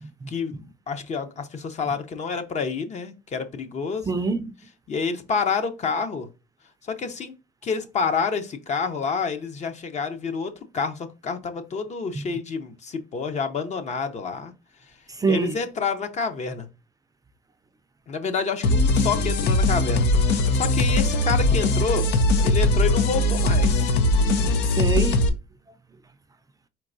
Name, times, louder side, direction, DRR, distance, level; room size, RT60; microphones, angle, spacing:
voice 1, 0.3-4.1 4.9-6.3 6.9-7.3 7.6-14.5 15.3-16.7 18.1-22.1 22.4-23.9, left 5 dB, 45° left, 0.8 m, -28 dB
voice 2, 4.1-4.5 12.1-12.4 15.1-15.6 24.7-25.3, right 4 dB, 20° right, 0.4 m, -26 dB
sound 1, 18.6-25.3, left 2 dB, 90° left, 0.6 m, -20 dB
4.5 x 4.4 x 2.6 m
cardioid pair, 110°, 17 cm